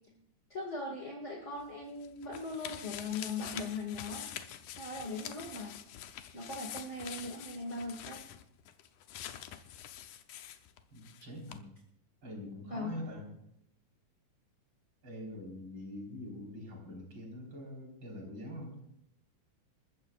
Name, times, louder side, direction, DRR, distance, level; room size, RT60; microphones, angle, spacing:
voice 1, 0.5-4.3 4.8-5.8 6.3-8.2 12.7-12.9, left 3 dB, 30° left, -1 dB, 1.7 m, -39 dB
sound 1, 1.6-11.2 11.5-11.6, left 11 dB, 75° left, 2.2 m, -46 dB
voice 2, 10.9-11.6 12.2-13.3 15.0-18.8, left 1 dB, 35° right, -1 dB, 4.9 m, -44 dB
28.5 x 14.0 x 2.4 m, 0.74 s
omnidirectional pair, 3.8 m